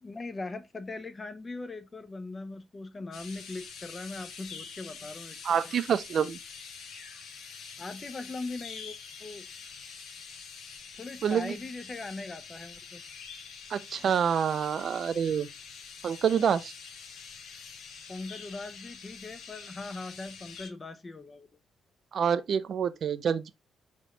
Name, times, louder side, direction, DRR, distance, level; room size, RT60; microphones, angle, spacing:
voice 1, 0.0-5.5 7.8-9.5 11.0-13.0 18.1-21.5, left 3 dB, 25° left, 0.5 m, -40 dB
sound 1, 3.1-20.7, left 6 dB, 75° left, 0.9 m, -46 dB
voice 2, 5.4-6.4 11.2-11.5 13.7-15.5 16.0-16.7 22.1-23.5, right 7 dB, 60° right, 0.4 m, -27 dB
4.3 x 3.0 x 3.1 m
cardioid pair, 105°, 0 cm